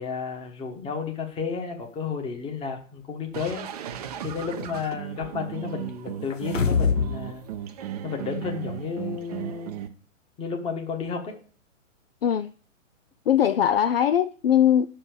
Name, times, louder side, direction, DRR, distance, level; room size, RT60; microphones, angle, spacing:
voice 1, 0.0-3.6 4.2-7.4 8.0-9.7 10.4-11.3, left 5 dB, 15° left, 1.4 m, -32 dB
sound 1, 3.3-9.9, right 10 dB, 30° right, 0.6 m, -36 dB
sound 2, 6.3-7.2 7.5-7.6, left 6 dB, 70° left, 1.2 m, -23 dB
voice 2, 12.2-12.5 13.3-15.0, left 10 dB, 50° left, 0.4 m, -21 dB
6.1 x 5.6 x 7.0 m
figure-of-eight pair, 120°, 39 cm